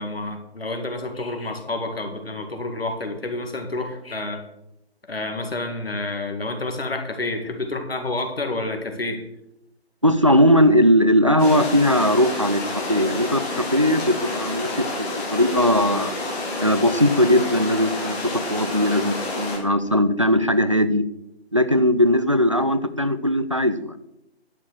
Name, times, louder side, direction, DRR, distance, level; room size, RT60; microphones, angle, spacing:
voice 1, 0.0-4.4 5.1-9.2, left 2 dB, 65° left, 5 dB, 2.1 m, -29 dB
voice 2, 10.0-16.1 16.6-21.0 21.5-23.9, equal, 30° right, 11 dB, 0.4 m, -19 dB
sound 1, 11.4-19.6, left 2 dB, 10° left, 1.4 m, -29 dB
11.0 x 6.2 x 6.4 m, 0.84 s
figure-of-eight pair, 150°, 33 cm